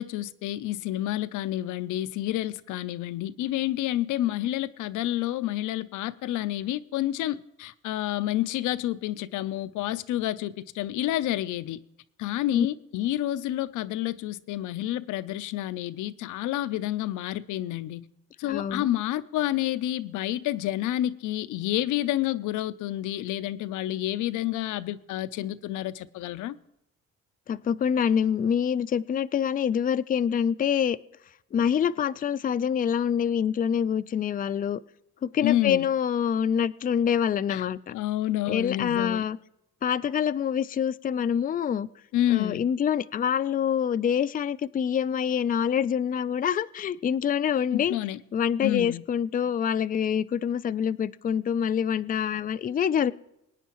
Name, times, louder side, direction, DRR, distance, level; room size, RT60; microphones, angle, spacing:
voice 1, 0.0-11.8 12.2-18.0 18.4-26.6 35.4-35.9 37.5-39.3 42.1-42.7 47.7-48.2 48.6-49.0, left 14 dB, 85° left, 0.5 m, -29 dB
voice 2, 18.4-18.9 27.5-31.0 31.5-34.8 35.2-37.9 38.5-39.4 39.8-41.9 42.3-47.9 48.3-53.1, left 8 dB, 30° left, 0.4 m, -26 dB
22.0 x 9.2 x 3.0 m
cardioid pair, 90°, 30 cm